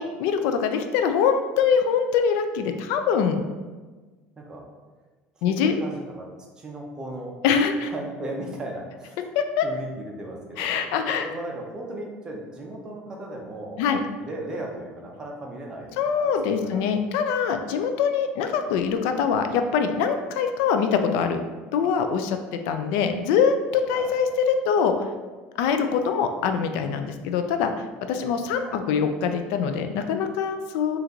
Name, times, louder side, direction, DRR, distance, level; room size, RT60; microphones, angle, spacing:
voice 1, 0.0-3.4 5.4-5.7 7.4-7.9 9.4-9.7 10.6-11.2 13.8-14.0 16.0-21.4 21.7-25.1 25.6-27.7 28.1-31.0, left 6 dB, 80° left, 7 dB, 0.4 m, -23 dB
voice 2, 5.4-6.3 6.6-7.3 7.8-9.3 9.6-10.9 11.2-13.8 14.2-16.9 23.9-24.4 28.6-28.8, right 1 dB, 20° right, -1 dB, 0.6 m, -36 dB
4.4 x 2.5 x 3.8 m, 1.3 s
cardioid pair, 170°, 4 cm